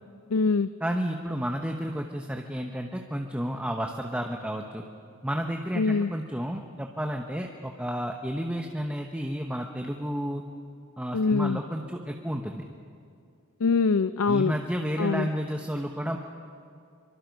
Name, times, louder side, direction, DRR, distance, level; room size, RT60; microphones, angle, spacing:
voice 1, 0.3-0.7 5.8-6.1 11.1-11.6 13.6-14.5 15.0-15.3, left 4 dB, 75° left, 13 dB, 0.5 m, -23 dB
voice 2, 0.8-4.8 5.2-10.4 11.0-12.6 14.3-16.2, equal, 5° right, 2 dB, 1.0 m, -31 dB
25.5 x 24.0 x 5.3 m, 2.4 s
head